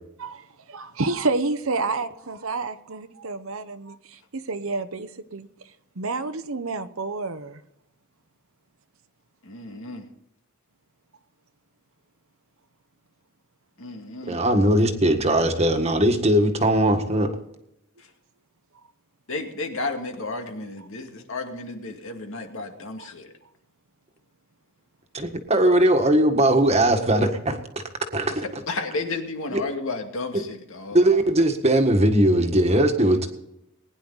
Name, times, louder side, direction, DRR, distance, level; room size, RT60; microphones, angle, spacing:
voice 1, 0.2-5.5 6.0-7.6 23.0-23.1, right 3 dB, 65° right, 0.9 m, -29 dB
voice 2, 9.4-10.1 13.8-14.4 18.0-18.1 19.3-23.3 28.7-31.1, left 3 dB, 65° left, 2.3 m, -32 dB
voice 3, 14.3-17.3 25.1-27.6 28.1-28.4 29.5-29.6 30.3-30.4 30.9-33.3, right 1 dB, 30° right, 1.7 m, -19 dB
20.5 x 10.5 x 4.1 m
head